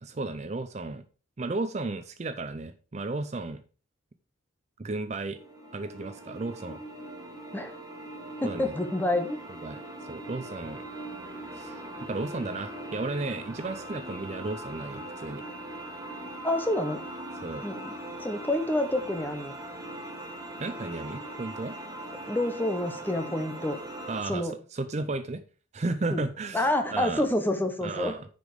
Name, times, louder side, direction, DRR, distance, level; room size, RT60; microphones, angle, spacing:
voice 1, 0.0-1.0 1.4-3.6 4.8-5.4 5.7-6.8 8.4-8.7 9.6-10.8 11.5-11.8 12.1-15.4 17.4-17.6 20.6-21.7 24.1-25.4 25.7-27.2 27.8-28.3, right 3 dB, 35° right, 10 dB, 0.5 m, -34 dB
sound 1, 5.3-24.2, right 1 dB, 20° right, 1.8 m, -40 dB
voice 2, 8.4-9.4 16.4-17.0 17.6-17.9 18.2-19.5 22.3-23.8 24.3-24.5 26.1-26.2 26.5-28.1, left 1 dB, 10° left, 6 dB, 1.1 m, -28 dB
10.0 x 5.1 x 5.0 m, 0.37 s
head